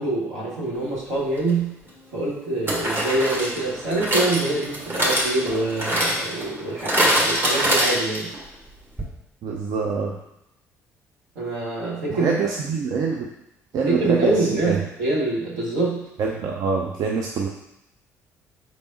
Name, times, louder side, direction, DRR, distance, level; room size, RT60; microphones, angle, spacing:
voice 1, 0.0-1.7 2.1-8.3 11.3-12.3 13.8-16.1, right 2 dB, 70° right, -7 dB, 1.3 m, -25 dB
sound 1, 1.4-1.5 2.7-8.4 8.7-8.8 9.0-9.1, equal, 25° right, 1.4 m, -24 dB
voice 2, 9.4-10.1 12.1-13.3 13.7-14.8 16.2-17.5, right 5 dB, 50° right, 0 dB, 0.4 m, -25 dB
5.0 x 3.4 x 2.6 m, 0.84 s
figure-of-eight pair, 45°, 8 cm